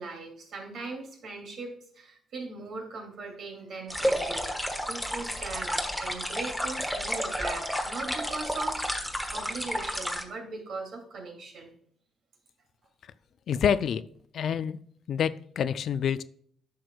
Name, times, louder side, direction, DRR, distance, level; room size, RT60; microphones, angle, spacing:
voice 1, 0.0-4.5 4.9-8.8 9.3-11.7, right 3 dB, 65° right, 2 dB, 2.6 m, -39 dB
sound 1, 3.9-10.2, equal, ahead, 1.2 m, -31 dB
voice 2, 13.5-14.0 14.3-14.8 15.1-16.2, left 8 dB, 65° left, 14 dB, 0.4 m, -27 dB
10.0 x 6.3 x 2.3 m, 0.63 s
cardioid pair, 90°, 0 cm